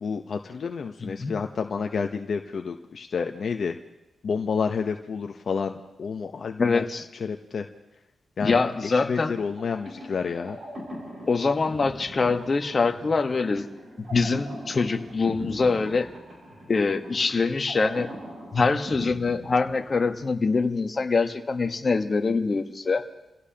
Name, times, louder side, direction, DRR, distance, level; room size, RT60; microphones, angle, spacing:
voice 1, 0.0-3.8 4.2-6.8 7.1-7.7 8.4-10.6, left 5 dB, 55° left, 5 dB, 0.8 m, -30 dB
voice 2, 1.0-1.4 6.6-7.1 8.4-9.4 11.3-13.6 14.1-16.1 16.7-18.1 18.5-23.0, left 4 dB, 35° left, 5 dB, 1.2 m, -24 dB
sound 1, 9.6-20.2, equal, 50° right, 7.4 m, -41 dB
29.5 x 17.0 x 2.9 m, 0.95 s
cardioid pair, 105°, 0 cm